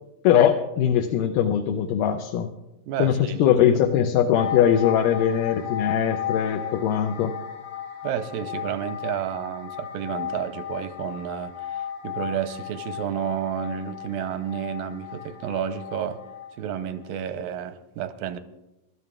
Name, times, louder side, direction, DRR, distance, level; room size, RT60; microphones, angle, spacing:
voice 1, 0.2-2.5 3.0-7.3, left 9 dB, 80° left, 2.1 m, -21 dB
voice 2, 2.9-3.4 8.0-16.2 16.6-18.4, right 9 dB, 85° right, 2.4 m, -31 dB
sound 1, 4.3-16.8 17.1-17.3, left 9 dB, 60° left, 1.6 m, -35 dB
27.5 x 12.5 x 2.4 m
omnidirectional pair, 4.0 m